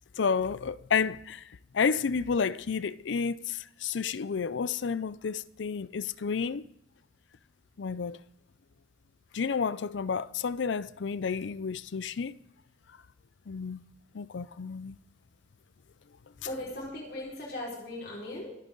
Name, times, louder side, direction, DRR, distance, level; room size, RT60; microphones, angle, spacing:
voice 1, 0.2-1.4 1.7-6.6 7.8-8.2 9.3-12.4 13.5-13.8 14.1-15.0, left 5 dB, 85° left, 0.5 m, -31 dB
voice 2, 16.4-18.5, left 1 dB, 65° left, 5.0 m, -38 dB
25.0 x 9.0 x 3.9 m
head